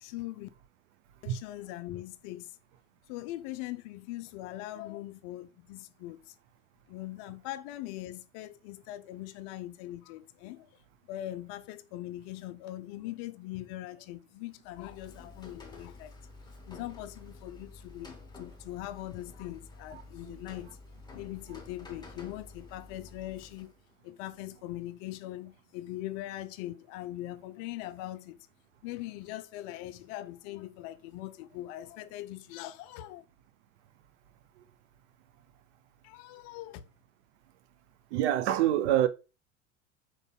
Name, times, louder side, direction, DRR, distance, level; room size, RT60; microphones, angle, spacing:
voice 1, 0.0-0.5 1.2-2.5 3.1-6.4 6.9-10.8 11.1-16.1 16.7-20.8 21.1-23.7 24.0-28.5 28.8-33.2 36.0-36.9, left 15 dB, 45° left, 0.4 m, -41 dB
Rain, 14.6-23.9, left 3 dB, 10° left, 1.3 m, -50 dB
voice 2, 38.1-39.1, right 12 dB, 65° right, 0.6 m, -26 dB
4.6 x 3.9 x 2.2 m
figure-of-eight pair, 75°, 37 cm